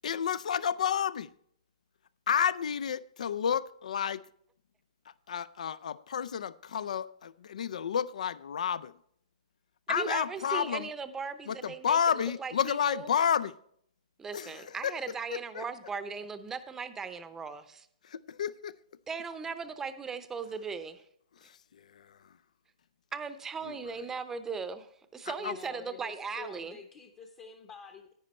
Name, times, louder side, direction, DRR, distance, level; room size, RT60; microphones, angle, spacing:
voice 1, 0.0-1.3 2.3-4.2 5.1-8.9 9.9-10.9 11.5-13.6 14.3-14.9 15.3-15.6 18.0-18.7 21.4-22.4 23.7-23.8 25.2-25.6, left 8 dB, 80° left, 0.4 m, -31 dB
voice 2, 9.9-12.0 12.4-13.1 14.2-17.9 19.1-21.0 23.1-26.8, right 5 dB, 10° right, 0.7 m, -38 dB
voice 3, 25.4-28.1, left 5 dB, 25° left, 0.8 m, -48 dB
10.5 x 9.6 x 4.3 m
hypercardioid pair, 150°, 4 cm